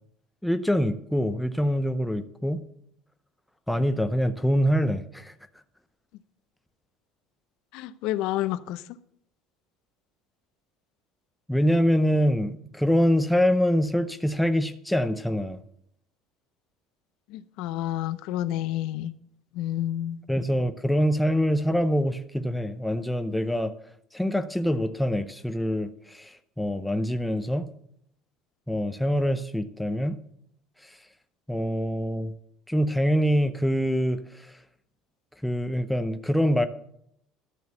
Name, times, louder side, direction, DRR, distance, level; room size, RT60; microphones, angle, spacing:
voice 1, 0.4-2.6 3.7-5.3 11.5-15.6 20.3-23.7 24.1-27.7 28.7-30.2 31.5-32.3 32.7-34.5 35.4-36.7, equal, ahead, 0.6 m, -25 dB
voice 2, 7.7-8.8 17.3-19.1 19.6-20.2, left 13 dB, 70° left, 0.6 m, -29 dB
12.5 x 6.2 x 6.9 m
cardioid pair, 135°, 0 cm